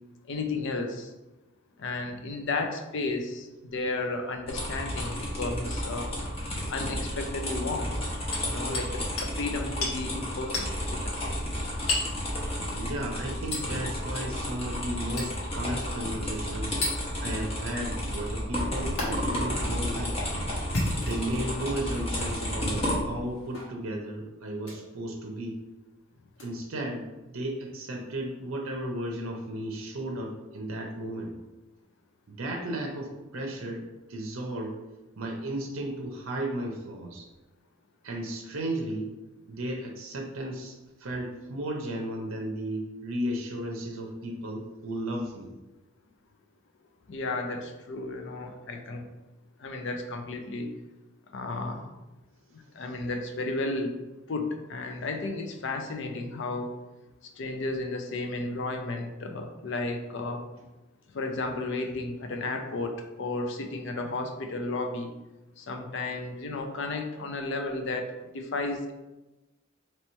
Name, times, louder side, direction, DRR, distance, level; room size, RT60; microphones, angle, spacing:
voice 1, 0.3-1.1 1.8-6.1 6.7-7.9 8.4-11.4 47.1-49.1 49.6-50.7 51.3-51.9 52.5-54.0 54.3-56.7 57.4-60.4 61.1-65.1 65.6-68.9, left 2 dB, 60° left, 5 dB, 0.5 m, -33 dB
sound 1, 4.5-23.2, equal, 25° left, 0.9 m, -32 dB
Hammer, 8.3-8.9 9.2-9.3 9.8-10.0 10.5-10.7 11.9-12.2 13.5-13.7 15.2-15.4 16.8-17.0 19.0-19.1 20.6-21.4 22.1-22.3 23.5-23.7 24.6-24.8 26.4-26.5, left 2 dB, 85° left, 1.1 m, -31 dB
voice 2, 12.8-16.8 17.2-20.2 20.9-25.6 26.4-31.3 32.3-34.8 35.2-37.3 38.0-39.1 39.5-45.5, right 1 dB, 70° right, 0 dB, 0.6 m, -34 dB
3.0 x 3.0 x 4.3 m, 1.1 s
head